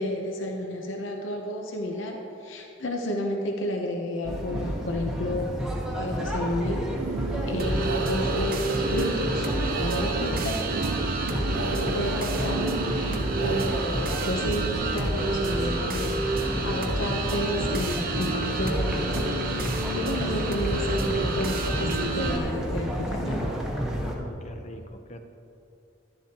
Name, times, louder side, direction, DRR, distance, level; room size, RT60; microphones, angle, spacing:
voice 1, 0.0-5.5 5.9-6.8 7.4-10.7 11.3-23.5, left 1 dB, 70° left, 2 dB, 0.8 m, -32 dB
sound 1, 4.2-24.2, equal, 5° right, 1.0 m, -31 dB
sound 2, 6.9-14.3, right 6 dB, 65° right, 0.3 m, -34 dB
sound 3, 7.6-22.4, right 2 dB, 45° right, 0.9 m, -30 dB
voice 2, 24.1-25.2, left 1 dB, 35° left, 6 dB, 0.6 m, -43 dB
11.5 x 11.0 x 2.9 m, 2.6 s
head